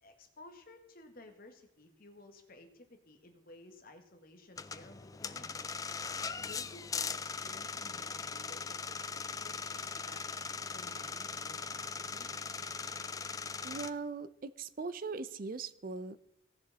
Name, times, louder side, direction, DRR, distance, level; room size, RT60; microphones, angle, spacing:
voice 1, 0.0-5.6 6.3-10.4 10.7-12.3, left 2 dB, 50° left, 5 dB, 1.6 m, -55 dB
sound 1, 4.6-13.9, left 5 dB, 20° left, 0.3 m, -40 dB
voice 2, 13.6-16.2, right 4 dB, 45° right, 15 dB, 0.5 m, -40 dB
17.5 x 6.6 x 4.1 m, 0.89 s
head